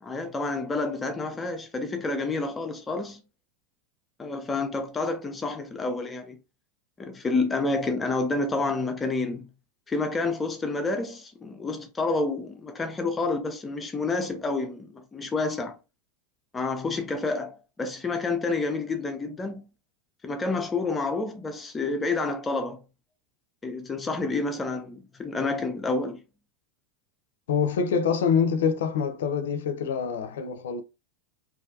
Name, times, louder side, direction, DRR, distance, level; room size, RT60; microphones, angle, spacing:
voice 1, 0.0-3.2 4.2-6.4 7.0-9.5 9.9-15.8 16.5-19.6 20.2-22.8 23.6-26.2, left 3 dB, 20° left, 0.5 m, -29 dB
voice 2, 27.5-30.8, left 6 dB, 85° left, 0.4 m, -25 dB
2.5 x 2.2 x 2.7 m
hypercardioid pair, 110°, 0 cm